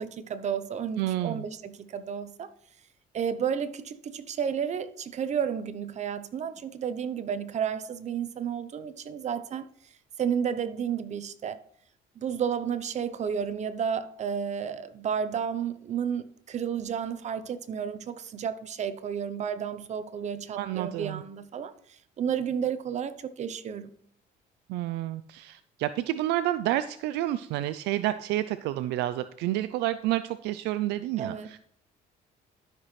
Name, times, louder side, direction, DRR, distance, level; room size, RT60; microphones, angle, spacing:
voice 1, 0.0-2.5 3.1-9.7 10.2-11.6 12.2-23.9 31.2-31.5, right 7 dB, 45° right, 0.7 m, -32 dB
voice 2, 1.0-1.4 20.5-21.2 24.7-31.6, right 14 dB, 85° right, 0.4 m, -29 dB
12.5 x 5.9 x 3.2 m
cardioid pair, 110°, 17 cm